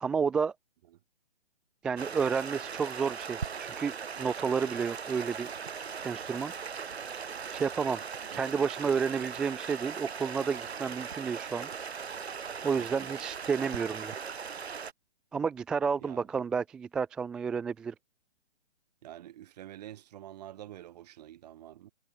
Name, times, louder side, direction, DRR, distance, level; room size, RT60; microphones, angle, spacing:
voice 1, 0.0-0.5 1.8-5.5 6.0-6.5 7.5-8.0 8.3-11.7 12.6-14.1 15.3-17.9, right 6 dB, ahead, 0.5 m, -31 dB
Stream, 2.0-14.9, right 6 dB, 70° right, 3.6 m, -39 dB
voice 2, 12.8-13.1 16.0-16.3 19.0-21.9, right 13 dB, 40° right, 6.8 m, -47 dB
hypercardioid pair, 155°, 33 cm